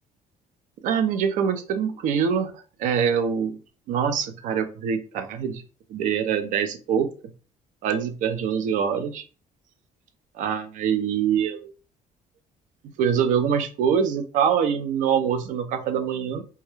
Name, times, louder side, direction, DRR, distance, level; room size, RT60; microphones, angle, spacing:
voice 1, 0.8-2.5 2.8-3.6 3.9-5.6 5.9-7.1 7.8-9.2 10.4-11.7 13.0-16.4, right 7 dB, 65° right, 8 dB, 0.4 m, -24 dB
2.3 x 2.0 x 3.1 m, 0.36 s
cardioid pair, 175°, 14 cm